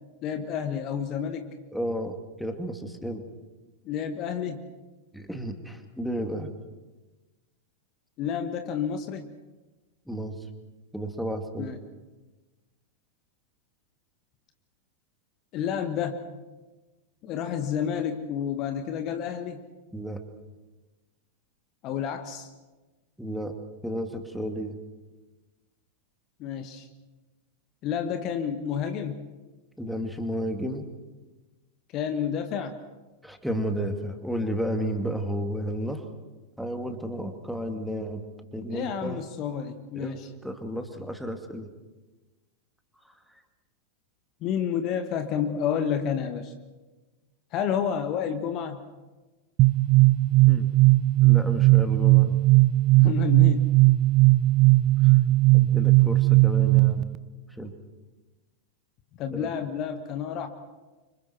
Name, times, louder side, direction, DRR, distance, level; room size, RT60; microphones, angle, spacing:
voice 1, 0.2-1.5 3.8-4.7 8.2-9.3 11.6-11.8 15.5-16.2 17.2-19.6 21.8-22.5 26.4-26.9 27.8-29.3 31.9-32.8 38.7-40.3 44.4-46.5 47.5-48.8 53.0-53.7 59.2-60.5, left 8 dB, 40° left, 8 dB, 1.6 m, -30 dB
voice 2, 1.7-3.2 5.1-6.5 10.1-10.4 10.9-11.7 19.9-20.2 23.2-23.5 23.8-24.8 29.8-30.9 33.2-36.1 36.6-38.2 38.5-39.2 39.9-41.7 50.5-50.7 51.2-52.4 53.0-53.1 55.0-55.1 55.5-57.1 57.6-57.7 59.3-59.5, equal, ahead, 5 dB, 2.3 m, -32 dB
sound 1, 49.6-57.2, right 19 dB, 40° right, 0.7 m, -18 dB
30.0 x 26.0 x 4.6 m, 1.2 s
figure-of-eight pair, 90°, 0 cm